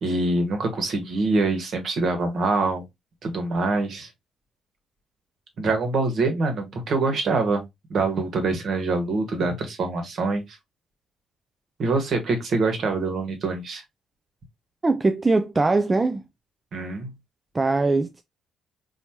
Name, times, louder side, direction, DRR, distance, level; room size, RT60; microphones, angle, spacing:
voice 1, 0.0-2.8 3.2-4.1 5.6-7.6 7.9-10.6 11.8-13.8 16.7-17.1, right 3 dB, 55° right, 1.4 m, -24 dB
voice 2, 14.8-16.2 17.5-18.2, right 3 dB, 25° right, 0.4 m, -21 dB
4.4 x 2.8 x 2.9 m
hypercardioid pair, 45°, 0 cm